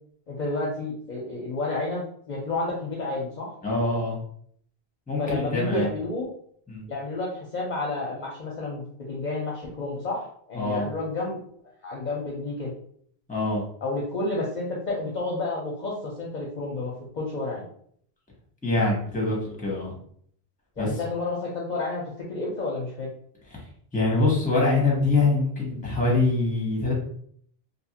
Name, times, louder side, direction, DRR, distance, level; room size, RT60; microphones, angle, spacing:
voice 1, 0.3-3.5 5.2-6.3 6.9-11.4 11.8-12.7 13.8-17.7 20.8-23.1, left 2 dB, 50° left, -4 dB, 0.6 m, -30 dB
voice 2, 3.6-4.2 5.1-5.9 6.7-6.9 10.5-10.9 13.3-13.6 18.6-19.9 20.8-20.9 23.9-26.9, left 3 dB, 10° left, -3 dB, 0.8 m, -24 dB
2.6 x 2.4 x 2.8 m, 0.63 s
omnidirectional pair, 1.1 m